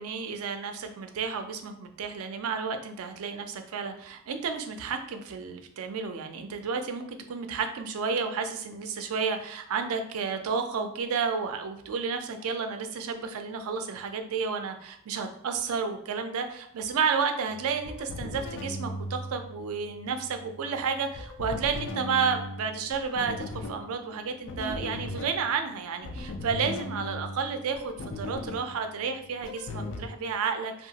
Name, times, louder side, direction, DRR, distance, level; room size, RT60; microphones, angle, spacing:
voice 1, 0.0-30.9, right 5 dB, 70° right, 7 dB, 0.4 m, -31 dB
sound 1, 17.5-30.1, left 2 dB, 60° left, 0.4 m, -39 dB
2.8 x 2.2 x 2.7 m, 0.68 s
head